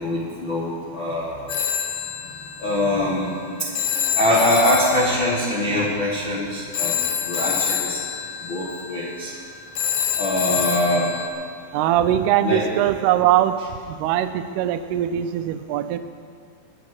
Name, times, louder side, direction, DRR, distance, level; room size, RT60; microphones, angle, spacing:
voice 1, 0.0-1.4 2.6-3.3 4.1-8.0 8.4-9.3 10.2-11.1 12.4-12.6 14.0-14.1, left 1 dB, 65° left, -6 dB, 1.2 m, -23 dB
Telephone, 1.5-11.3, left 8 dB, 85° left, 1.6 m, -27 dB
voice 2, 11.7-13.6 13.9-16.0, right 11 dB, 85° right, 10 dB, 2.3 m, -21 dB
21.5 x 9.4 x 4.9 m, 2.2 s
omnidirectional pair, 5.2 m